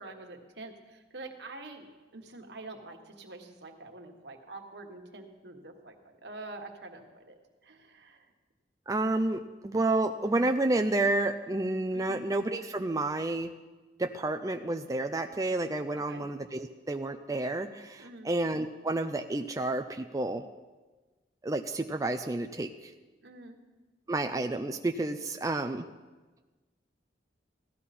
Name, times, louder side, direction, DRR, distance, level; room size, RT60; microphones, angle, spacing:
voice 1, 0.0-8.3 11.9-12.3 15.9-16.2 18.0-18.3 23.2-23.6, right 2 dB, 70° right, 3 dB, 1.5 m, -46 dB
voice 2, 8.9-13.5 14.0-20.4 21.4-22.7 24.1-25.8, right 2 dB, 20° right, 5 dB, 0.4 m, -30 dB
16.5 x 12.5 x 4.3 m, 1.2 s
head